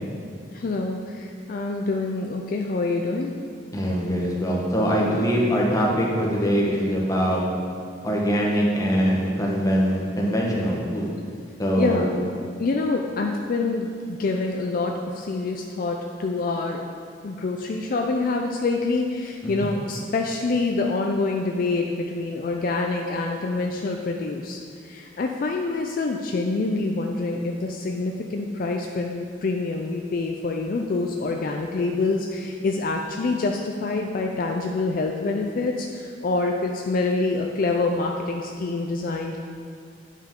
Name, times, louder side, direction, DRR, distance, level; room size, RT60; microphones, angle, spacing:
voice 1, 0.5-3.3 5.0-5.2 11.8-12.1 12.6-16.8 17.2-39.4, left 3 dB, 50° left, 2 dB, 0.4 m, -26 dB
voice 2, 3.7-7.4 8.0-11.1 11.6-12.2 19.4-19.7, equal, 20° left, -3 dB, 1.1 m, -23 dB
9.1 x 5.5 x 3.7 m, 2.2 s
head